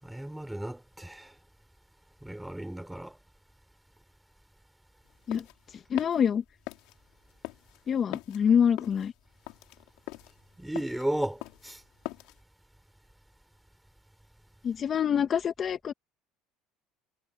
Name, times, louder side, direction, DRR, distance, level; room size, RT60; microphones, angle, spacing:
voice 1, 0.0-1.3 2.2-3.1 10.6-11.8, right 1 dB, 5° right, 5.6 m, -34 dB
sound 1, 5.1-12.4, left 22 dB, 75° left, 3.7 m, -43 dB
voice 2, 5.9-6.4 7.9-9.1 14.6-15.9, left 8 dB, 40° left, 2.4 m, -26 dB
supercardioid pair, 100°, 0 cm